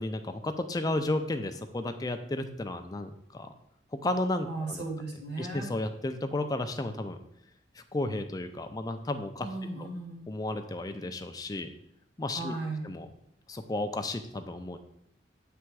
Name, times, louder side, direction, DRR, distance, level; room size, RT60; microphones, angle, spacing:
voice 1, 0.0-3.5 3.9-4.8 5.4-7.2 7.8-9.5 10.3-11.7 12.2-12.5 12.8-13.1 13.5-14.8, left 2 dB, 20° left, 7 dB, 0.4 m, -33 dB
voice 2, 4.4-5.7 9.4-10.3 12.3-12.9, right 2 dB, 70° right, -1 dB, 1.5 m, -36 dB
7.5 x 3.4 x 4.6 m, 0.77 s
head